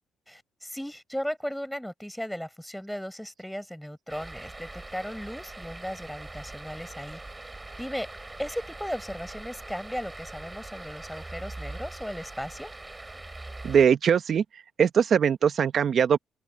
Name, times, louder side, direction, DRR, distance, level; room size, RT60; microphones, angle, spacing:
voice 1, 0.3-7.2 7.8-8.1 8.4-12.7, equal, ahead, 5.8 m, -36 dB
sound 1, 4.1-13.9, right 2 dB, 15° right, 7.3 m, -42 dB
voice 2, 13.6-16.2, right 7 dB, 55° right, 0.9 m, -22 dB
open air
cardioid pair, 90°, 0 cm